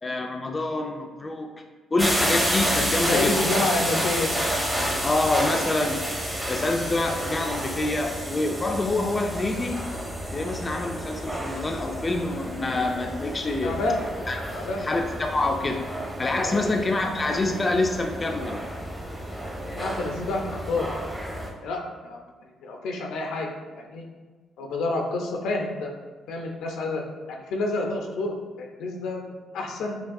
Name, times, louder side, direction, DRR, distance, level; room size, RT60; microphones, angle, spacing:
voice 1, 0.0-1.5 1.9-3.4 5.0-6.1 6.5-9.9 10.3-13.8 14.3-14.4 14.8-15.9 16.2-18.6, left 2 dB, 25° left, 3 dB, 0.4 m, -26 dB
sound 1, 2.0-21.5, equal, 10° right, 0.7 m, -30 dB
voice 2, 3.1-4.3 13.6-14.0 14.5-14.8 16.4-16.7 19.7-20.9 21.6-22.2 22.6-23.5 23.8-24.0 24.6-25.9 26.3-27.0 27.3-30.0, left 2 dB, 85° left, 2 dB, 0.6 m, -29 dB
5.6 x 2.3 x 2.6 m, 1.3 s
cardioid pair, 90°, 0 cm